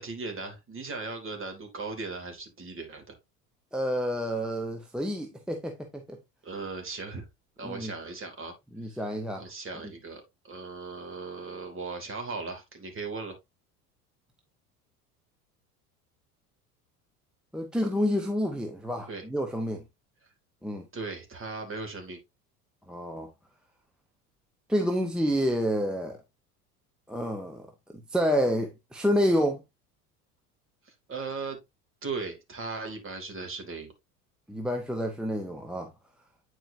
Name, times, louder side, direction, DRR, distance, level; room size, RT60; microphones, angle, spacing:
voice 1, 0.0-3.2 6.4-7.3 7.6-8.5 8.8-9.0 9.3-13.4 19.1-19.2 20.9-22.2 30.8-31.6 32.0-33.9, right 4 dB, 25° right, 2.6 m, -37 dB
voice 2, 3.7-6.2 7.6-7.9 8.7-9.4 17.5-19.8 20.6-20.9 22.9-23.3 24.7-26.2 27.1-27.7 28.1-29.6 34.5-35.9, equal, ahead, 0.9 m, -28 dB
9.1 x 4.7 x 2.7 m
figure-of-eight pair, 75°, 45 cm